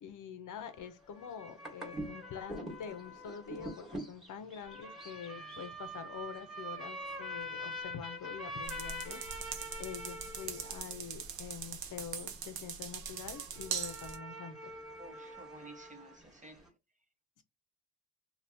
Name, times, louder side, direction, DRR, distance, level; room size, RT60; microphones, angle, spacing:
voice 1, 0.0-9.2 9.8-14.7, left 7 dB, 50° left, 0.6 m, -46 dB
sound 1, 0.6-16.7, equal, ahead, 1.1 m, -45 dB
sound 2, 8.6-14.2, right 7 dB, 65° right, 0.8 m, -41 dB
voice 2, 15.0-16.6, right 1 dB, 20° right, 0.4 m, -53 dB
2.7 x 2.4 x 3.3 m
cardioid pair, 110°, 39 cm